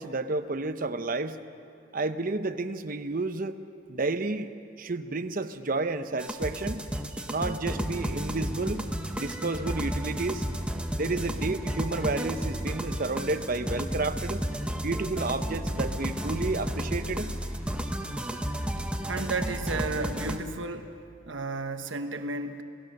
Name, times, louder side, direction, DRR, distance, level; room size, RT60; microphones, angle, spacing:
voice 1, 0.0-1.4 1.9-3.6 3.9-4.5 4.8-6.8 7.3-8.9 9.1-10.4 10.9-14.4 14.8-17.3, right 3 dB, 45° right, 9 dB, 0.8 m, -31 dB
sound 1, 6.2-20.4, equal, 5° right, 1.0 m, -32 dB
voice 2, 19.1-20.9 21.3-22.6, right 3 dB, 85° right, 7 dB, 1.2 m, -33 dB
28.5 x 17.0 x 6.6 m, 2.4 s
head